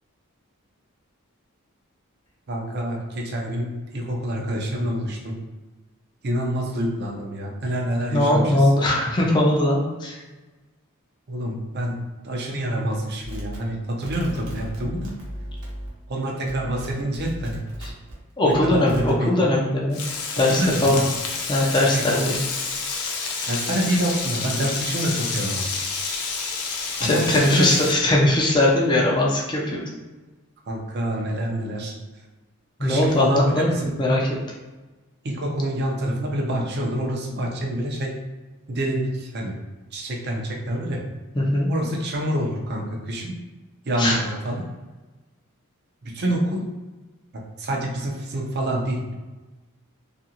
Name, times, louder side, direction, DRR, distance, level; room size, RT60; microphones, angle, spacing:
voice 1, 2.5-5.4 6.2-8.5 11.3-12.0 12.2-15.1 16.1-17.6 18.4-19.3 20.5-21.0 21.9-22.3 23.4-25.7 27.0-27.7 30.7-31.9 32.8-33.9 35.2-38.1 38.7-39.5 39.9-41.0 41.7-43.3 43.9-44.6 46.0-46.6 47.3-49.2, right 1 dB, 45° right, 0 dB, 0.5 m, -27 dB
voice 2, 8.1-10.2 17.8-17.9 18.4-20.0 20.4-21.0 21.5-22.4 27.0-29.8 32.8-33.7 34.0-34.3 41.4-41.7 44.0-44.2, left 1 dB, 20° left, -2 dB, 0.4 m, -20 dB
sound 1, 13.2-16.1 16.4-18.1 18.5-19.2, equal, 80° right, 0.9 m, -36 dB
Frying (food), 19.9-27.9, left 4 dB, 80° left, 0.5 m, -29 dB
2.8 x 2.5 x 2.8 m, 1.2 s
head